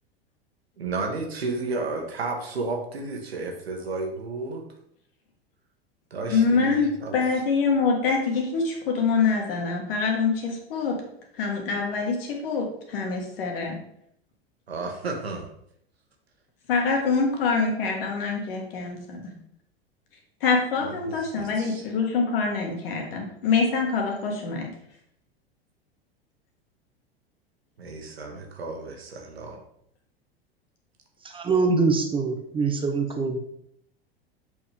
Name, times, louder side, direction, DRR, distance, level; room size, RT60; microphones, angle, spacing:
voice 1, 0.8-4.6 6.1-7.1 14.7-15.5 20.8-21.8 27.8-29.6, right 3 dB, 80° right, 2 dB, 1.4 m, -32 dB
voice 2, 6.3-11.0 11.3-13.8 16.7-19.3 20.4-24.7, left 4 dB, 65° left, 1 dB, 2.0 m, -25 dB
voice 3, 31.3-33.4, right 4 dB, 15° right, 5 dB, 1.0 m, -24 dB
7.6 x 4.8 x 3.6 m, 0.71 s
figure-of-eight pair, 85°, 31 cm